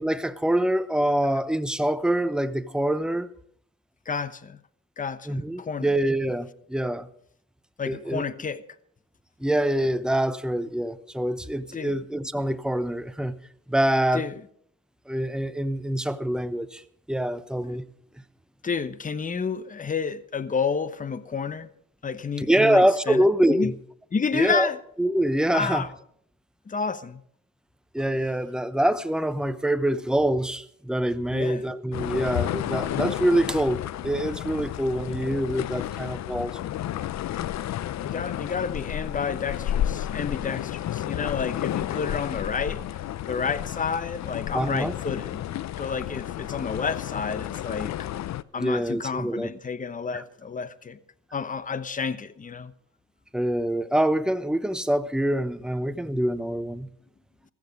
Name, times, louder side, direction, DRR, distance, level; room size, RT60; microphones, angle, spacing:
voice 1, 0.0-3.3 5.3-7.1 7.9-8.2 9.4-13.3 13.7-14.3 15.1-16.8 17.1-17.8 22.4-23.7 24.3-24.7 25.0-25.9 27.9-36.6 44.5-44.9 48.6-49.5 50.1-50.2 53.3-56.9, right 1 dB, 5° right, 0.9 m, -25 dB
voice 2, 4.1-4.6 5.0-5.9 7.8-8.6 11.7-12.0 14.1-14.3 18.6-21.7 22.0-23.2 23.5-23.7 24.1-24.8 25.5-25.9 26.7-27.2 31.3-31.6 38.0-42.9 43.3-45.4 45.8-48.0 48.5-51.0 51.3-52.7, left 5 dB, 25° left, 1.0 m, -30 dB
sound 1, 31.9-48.4, left 12 dB, 65° left, 0.6 m, -31 dB
16.0 x 14.5 x 5.3 m
cardioid pair, 90°, 30 cm